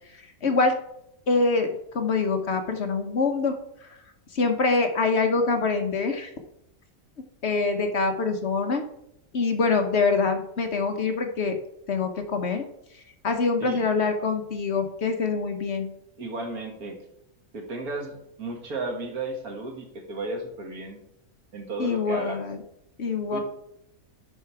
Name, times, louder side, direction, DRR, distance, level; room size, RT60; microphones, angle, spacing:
voice 1, 0.4-0.7 1.3-1.7 1.9-3.6 4.3-6.3 7.4-8.8 9.3-11.6 11.9-12.6 13.2-15.9 21.8-22.6 23.0-23.4, left 4 dB, 55° left, 5 dB, 1.1 m, -24 dB
voice 2, 16.2-17.0 17.5-21.0 21.5-22.4 23.3-23.4, right 2 dB, 80° right, 2 dB, 2.0 m, -34 dB
10.5 x 4.8 x 4.6 m, 0.78 s
omnidirectional pair, 1.5 m